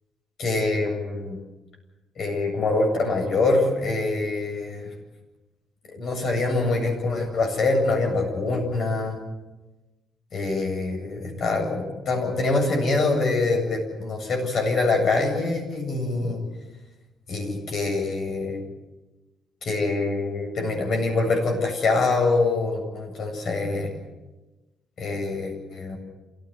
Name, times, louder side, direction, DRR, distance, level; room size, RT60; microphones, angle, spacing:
voice 1, 0.4-1.4 2.2-4.9 5.9-9.2 10.3-16.4 17.3-18.6 19.6-23.9 25.0-26.0, left 3 dB, 60° left, 3 dB, 7.9 m, -24 dB
27.5 x 16.0 x 8.0 m, 1.1 s
cardioid pair, 90°, 0 cm